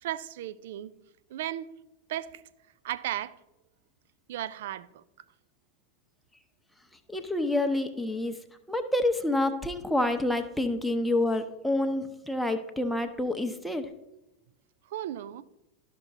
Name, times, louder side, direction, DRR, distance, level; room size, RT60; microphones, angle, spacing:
voice 1, 0.0-0.9 1.3-1.7 2.1-2.4 2.8-3.4 4.3-5.0 14.9-15.4, right 12 dB, 60° right, 0.4 m, -35 dB
voice 2, 7.1-8.4 8.7-13.9, left 1 dB, 5° left, 0.8 m, -28 dB
12.5 x 5.9 x 2.7 m
figure-of-eight pair, 85°, 0 cm